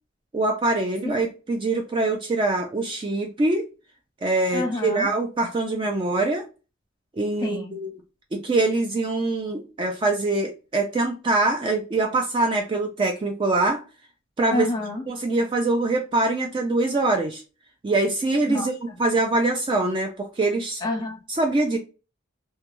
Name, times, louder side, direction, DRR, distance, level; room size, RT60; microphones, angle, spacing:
voice 1, 0.3-3.6 4.2-6.4 7.2-7.9 8.3-13.8 14.4-14.7 15.1-17.4 17.8-20.8 21.3-21.8, right 2 dB, 25° right, 0.3 m, -24 dB
voice 2, 4.5-5.1 7.4-7.8 14.5-15.0 18.5-18.7 20.8-21.2, left 2 dB, 20° left, 0.8 m, -28 dB
2.2 x 2.2 x 2.9 m
head